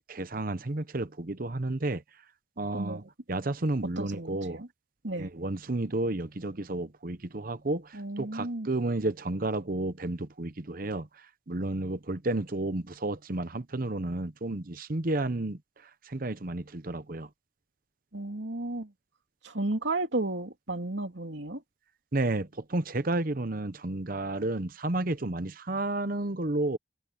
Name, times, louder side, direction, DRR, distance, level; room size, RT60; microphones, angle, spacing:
voice 1, 0.0-2.0 2.6-4.6 5.2-17.3 22.1-26.8, right 2 dB, 45° right, 0.9 m, -32 dB
voice 2, 4.0-4.7 5.0-5.3 7.9-8.7 18.1-18.9 19.4-21.6, right 2 dB, 65° right, 2.8 m, -33 dB
head